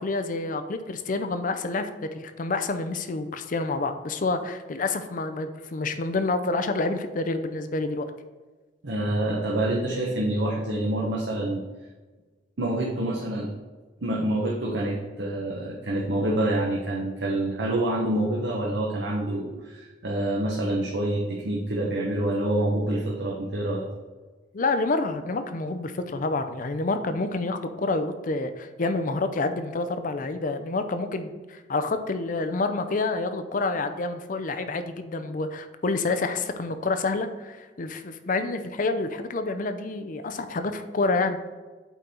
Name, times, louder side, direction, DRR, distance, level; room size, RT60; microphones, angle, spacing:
voice 1, 0.0-8.1 24.5-41.4, left 3 dB, 45° left, 9 dB, 0.5 m, -28 dB
voice 2, 8.8-11.6 12.6-13.5 14.0-23.8, right 1 dB, 80° right, -4 dB, 1.1 m, -27 dB
8.2 x 4.0 x 4.3 m, 1.3 s
head